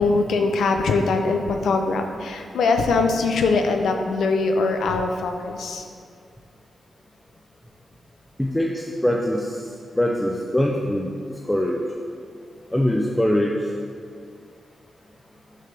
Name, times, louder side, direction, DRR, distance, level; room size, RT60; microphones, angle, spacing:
voice 1, 0.0-5.8, left 3 dB, 85° left, 5 dB, 0.5 m, -22 dB
voice 2, 8.4-9.6 10.0-11.1 11.5-11.8 12.7-13.6, left 1 dB, 5° left, -1 dB, 0.4 m, -22 dB
6.6 x 3.3 x 5.3 m, 2.2 s
wide cardioid pair, 160°, 0 cm